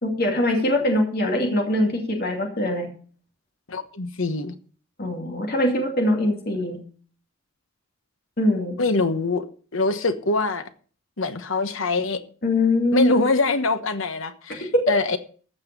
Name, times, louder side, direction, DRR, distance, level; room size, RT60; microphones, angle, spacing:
voice 1, 0.0-2.9 5.0-6.8 8.4-8.8 12.4-13.2 14.7-14.9, left 1 dB, 45° left, 2 dB, 2.5 m, -22 dB
voice 2, 3.7-4.5 8.8-10.7 11.2-12.2 12.9-15.2, left 3 dB, 65° left, 10 dB, 1.1 m, -24 dB
14.5 x 5.6 x 6.7 m, 0.43 s
head